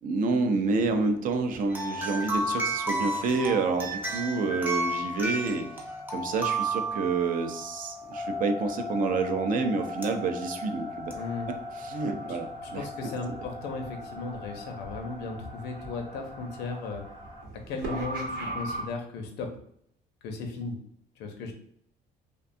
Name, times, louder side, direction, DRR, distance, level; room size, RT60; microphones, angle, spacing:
voice 1, 0.0-5.7 6.1-11.1 11.7-13.1, right 4 dB, 55° right, 6 dB, 0.4 m, -28 dB
sound 1, 0.8-18.8, left 1 dB, 75° right, 0.9 m, -40 dB
sound 2, 1.7-7.7 10.0-10.1 11.1-11.2, right 2 dB, 10° right, 0.6 m, -31 dB
voice 2, 11.1-11.5 12.3-12.4 12.6-17.0 17.7-19.5 20.2-20.8 21.2-21.5, left 3 dB, 85° left, 3 dB, 0.6 m, -36 dB
2.6 x 2.2 x 2.5 m, 0.68 s
cardioid pair, 110°, 17 cm